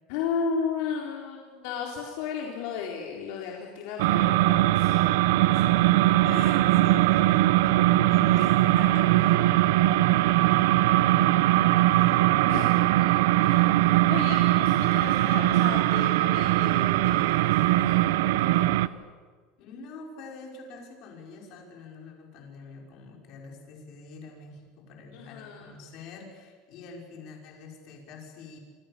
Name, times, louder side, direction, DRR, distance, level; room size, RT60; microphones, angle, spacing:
voice 1, 0.1-5.0 12.5-13.0 13.4-19.0 25.1-25.7, left 6 dB, 65° left, -1 dB, 4.0 m, -35 dB
sound 1, 4.0-18.9, right 16 dB, 90° right, 0.8 m, -21 dB
voice 2, 6.0-12.2 13.8-13.9 19.6-28.6, left 4 dB, 45° left, 1 dB, 5.9 m, -45 dB
28.0 x 24.5 x 6.9 m, 1.5 s
cardioid pair, 170°, 0 cm